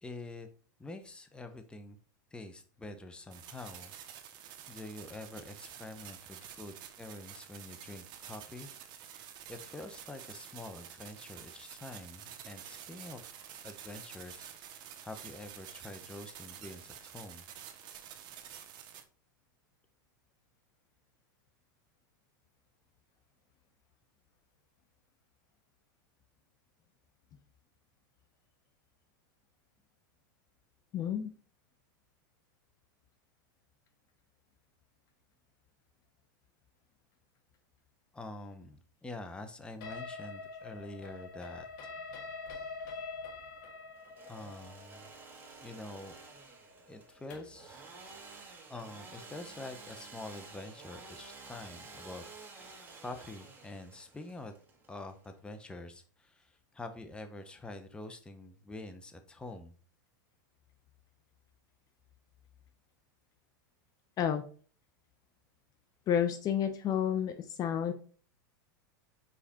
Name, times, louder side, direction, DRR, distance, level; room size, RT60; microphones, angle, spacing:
voice 1, 0.0-0.5 0.8-2.0 2.3-3.9 4.3-4.4 4.7-8.7 9.0-13.4 13.6-17.4 38.1-41.7 44.3-45.1 45.6-46.1 46.9-47.8 48.7-52.2 52.5-54.5 54.9-59.7, left 2 dB, 10° left, 7 dB, 0.9 m, -46 dB
sound 1, 3.3-19.0, right 9 dB, 45° right, 1.0 m, -49 dB
voice 2, 30.9-31.3 64.2-64.4 66.1-67.9, left 9 dB, 35° left, 8 dB, 0.7 m, -30 dB
sound 2, 39.8-47.6, left 4 dB, 65° left, 1.8 m, -45 dB
Engine / Sawing, 44.0-55.6, right 4 dB, 20° right, 1.5 m, -52 dB
5.0 x 4.8 x 4.3 m, 0.42 s
hypercardioid pair, 115°, 11 cm